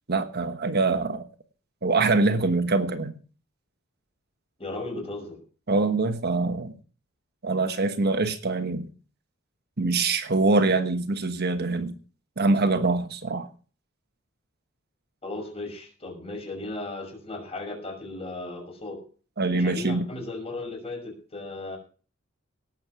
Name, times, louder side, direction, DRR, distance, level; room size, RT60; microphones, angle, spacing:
voice 1, 0.1-1.3 1.8-3.2 5.7-6.7 7.4-8.9 9.8-11.9 12.4-13.5 19.4-20.0, right 3 dB, 50° right, 8 dB, 1.2 m, -24 dB
voice 2, 4.6-5.4 15.2-19.0 19.5-21.8, left 2 dB, 30° left, 2 dB, 5.8 m, -36 dB
18.0 x 7.5 x 6.1 m, 0.40 s
head